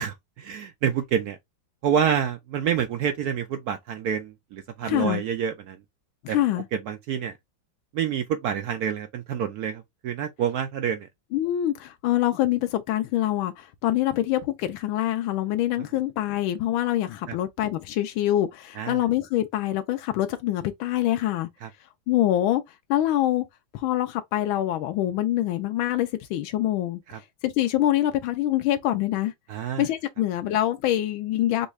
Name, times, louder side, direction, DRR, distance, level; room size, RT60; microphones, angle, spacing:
voice 1, 0.0-1.4 1.8-5.8 6.3-6.4 6.7-7.3 7.9-11.1 17.3-17.4 18.8-19.0 21.6-21.7 27.1-27.2 29.5-29.9, right 8 dB, 75° right, 0.8 m, -28 dB
voice 2, 4.9-5.2 6.2-6.6 11.3-21.5 22.1-22.6 22.9-23.4 23.7-27.0 27.4-29.3 29.8-31.7, left 13 dB, 90° left, 1.4 m, -25 dB
5.3 x 2.4 x 3.1 m
omnidirectional pair, 2.1 m